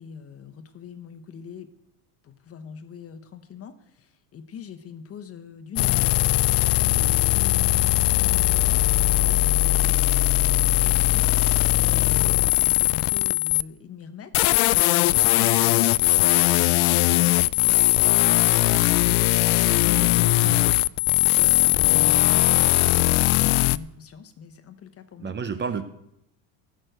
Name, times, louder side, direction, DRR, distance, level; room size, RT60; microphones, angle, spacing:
voice 1, 0.0-1.7 2.2-8.8 9.2-19.3 19.6-20.8 21.2-25.3, left 7 dB, 35° left, 11 dB, 1.0 m, -42 dB
sound 1, 5.8-13.6 14.3-23.8, left 19 dB, 90° left, 0.5 m, -20 dB
voice 2, 25.2-25.8, right 6 dB, 25° right, 10 dB, 0.6 m, -31 dB
14.0 x 6.5 x 7.9 m, 0.81 s
cardioid pair, 140°, 43 cm